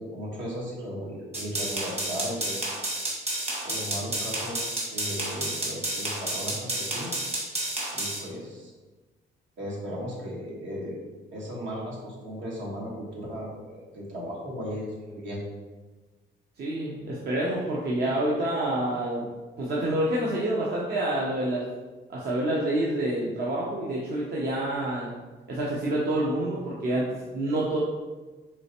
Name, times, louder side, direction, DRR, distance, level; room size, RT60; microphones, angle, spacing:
voice 1, 0.0-2.6 3.6-7.1 7.9-8.7 9.6-11.0 11.3-15.4, equal, 70° right, -4 dB, 1.4 m, -36 dB
sound 1, 1.3-8.2, right 1 dB, 35° right, 1.4 m, -31 dB
voice 2, 16.6-19.3 19.6-21.7 22.1-25.1 25.5-27.8, right 1 dB, 55° right, -5 dB, 0.8 m, -27 dB
4.6 x 3.2 x 2.9 m, 1.3 s
cardioid pair, 90°, 20 cm